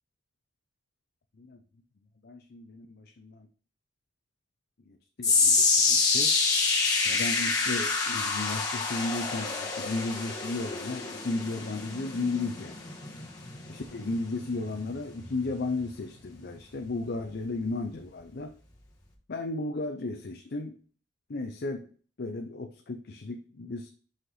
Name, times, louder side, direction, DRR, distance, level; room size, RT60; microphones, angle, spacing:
voice 1, 2.2-3.5 4.9-6.3 7.0-12.7 13.7-18.5 19.3-20.8 21.3-21.9 22.2-23.9, left 2 dB, 60° left, 5 dB, 0.6 m, -34 dB
sound 1, 5.2-17.5 17.9-18.2 18.9-19.0, left 4 dB, 20° left, 1.6 m, -28 dB
5.8 x 5.5 x 3.9 m, 0.42 s
head